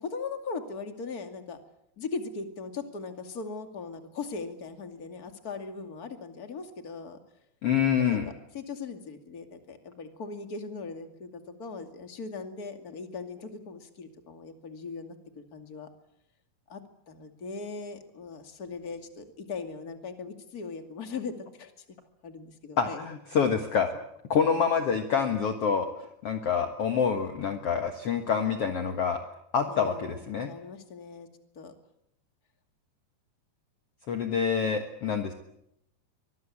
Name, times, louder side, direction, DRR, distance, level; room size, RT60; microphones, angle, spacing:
voice 1, 0.0-1.6 2.0-7.2 8.0-15.9 16.7-16.8 17.1-21.7 22.2-23.1 29.7-31.3 31.6-31.7, left 4 dB, 30° left, 6 dB, 1.9 m, -39 dB
voice 2, 7.6-8.3 22.8-23.9 24.3-25.9 26.2-29.2 29.5-30.5 34.1-35.3, left 6 dB, 60° left, 6 dB, 1.6 m, -26 dB
24.5 x 21.5 x 8.6 m, 0.79 s
omnidirectional pair, 5.0 m